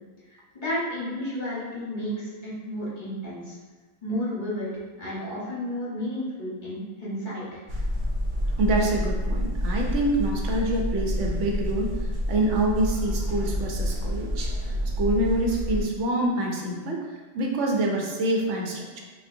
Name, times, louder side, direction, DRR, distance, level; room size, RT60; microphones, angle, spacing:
voice 1, 0.3-3.6 4.0-4.7 5.0-7.6, equal, 45° left, -8 dB, 1.2 m, -32 dB
sound 1, 7.7-15.8, equal, 60° right, 0.9 m, -28 dB
voice 2, 8.6-17.0 17.3-19.0, right 1 dB, 85° right, 0 dB, 1.0 m, -26 dB
5.1 x 2.4 x 2.6 m, 1.3 s
omnidirectional pair, 1.2 m